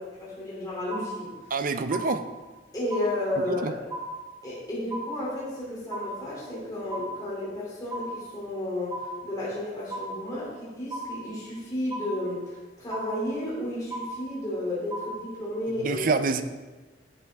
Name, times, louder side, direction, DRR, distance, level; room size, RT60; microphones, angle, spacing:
voice 1, 0.0-1.3 2.7-3.9 4.4-16.1, left 1 dB, 20° left, -8 dB, 2.9 m, -32 dB
sound 1, 0.9-1.6 1.9-2.6 2.9-3.6 3.9-4.6 4.9-5.6 5.9-6.6 6.9-7.6 7.9-8.6 8.9-9.6 9.9-10.6 10.9-11.6 11.9-12.6 12.9-13.6 13.9-14.6 14.9-15.6, right 2 dB, 20° right, 0.9 m, -37 dB
voice 2, 1.5-2.2 3.6-3.7 15.8-16.4, right 4 dB, 50° right, 11 dB, 0.5 m, -26 dB
10.0 x 7.2 x 3.5 m, 1.2 s
head